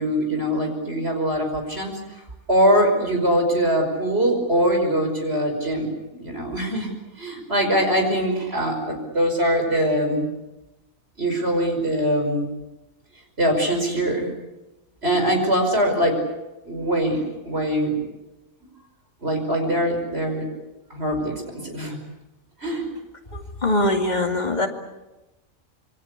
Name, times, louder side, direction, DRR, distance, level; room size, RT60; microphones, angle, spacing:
voice 1, 0.0-2.0 2.5-5.9 6.2-6.9 7.2-10.3 11.2-12.5 13.4-14.3 15.0-16.2 16.7-18.0 19.2-20.4 20.9-22.0 22.6-22.9, equal, 45° right, 3 dB, 5.8 m, -22 dB
voice 2, 23.3-24.7, left 1 dB, 30° left, 3 dB, 2.7 m, -22 dB
27.0 x 22.5 x 8.3 m, 1.0 s
omnidirectional pair, 1.5 m